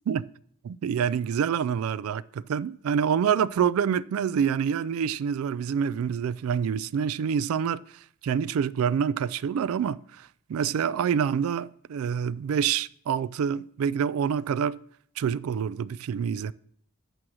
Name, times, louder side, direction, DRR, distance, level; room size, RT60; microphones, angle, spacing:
voice 1, 0.6-7.8 8.2-14.8 15.2-16.5, right 7 dB, 90° right, 0.3 m, -27 dB
8.8 x 6.4 x 6.1 m
head